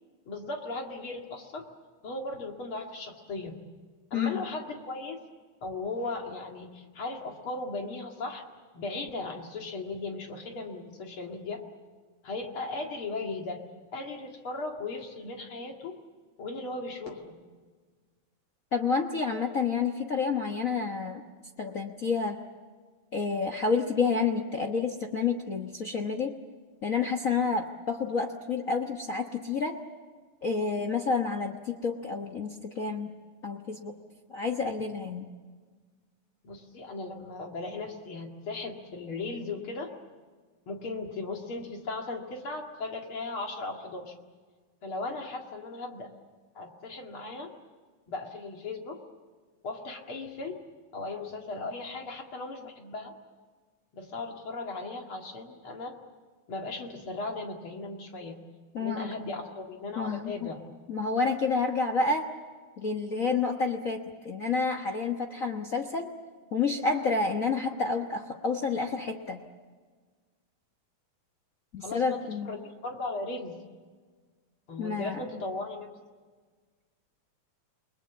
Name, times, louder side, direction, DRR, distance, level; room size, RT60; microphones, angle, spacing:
voice 1, 0.3-1.6 2.0-3.6 4.1-5.2 5.6-8.4 8.7-11.6 12.2-13.6 13.9-16.0 16.4-17.4 36.4-39.9 40.7-44.1 44.8-46.1 46.5-47.5 48.1-49.0 49.6-50.6 50.9-53.1 53.9-56.0 56.5-58.4 58.8-60.6 71.8-72.2 72.4-73.6 74.7-75.9, left 3 dB, 45° left, 2 dB, 2.7 m, -37 dB
voice 2, 4.1-4.4 18.7-21.2 21.6-22.4 23.1-26.3 26.8-29.7 30.4-33.1 33.4-33.9 34.3-35.3 58.7-59.1 60.0-60.5 60.9-62.3 62.8-66.1 66.5-69.4 71.7-72.6 74.8-75.4, left 4 dB, 75° left, 4 dB, 0.7 m, -29 dB
29.5 x 20.5 x 7.1 m, 1.5 s
omnidirectional pair, 3.5 m